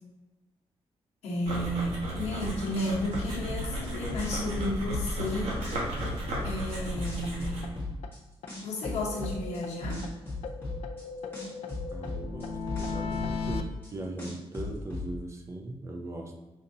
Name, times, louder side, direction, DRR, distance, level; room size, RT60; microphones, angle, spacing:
voice 1, 1.2-5.6 6.4-7.7 8.6-10.1, equal, 90° left, -3 dB, 1.2 m, -32 dB
sound 1, 1.5-7.8, right 1 dB, 70° right, 1.2 m, -35 dB
sound 2, 2.4-2.5 2.8-5.3 5.6-8.2 8.5-11.0 11.3-13.9 14.2-15.1, left 3 dB, 20° left, 1.4 m, -36 dB
sound 3, 7.2-7.3 7.6-7.7 8.0-8.1 8.4-8.5 8.8-10.1 10.4-13.6, left 5 dB, 75° left, 0.4 m, -36 dB
voice 2, 11.9-16.3, right 2 dB, 25° right, 2 dB, 0.5 m, -40 dB
5.3 x 2.7 x 2.7 m, 1.1 s
wide cardioid pair, 165°, 11 cm